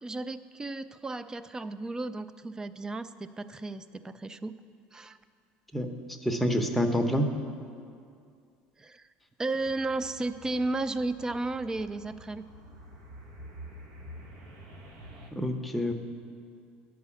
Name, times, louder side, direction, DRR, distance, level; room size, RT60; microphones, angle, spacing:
voice 1, 0.0-4.5 4.9-5.2 8.8-9.1 9.4-12.4, right 2 dB, 15° right, 13 dB, 0.3 m, -34 dB
voice 2, 5.7-7.3 15.3-15.9, equal, ahead, 3 dB, 0.8 m, -28 dB
sound 1, 9.6-15.3, equal, 80° right, 1.2 m, -48 dB
10.5 x 4.8 x 7.1 m, 2.3 s
supercardioid pair, 115°, 4 cm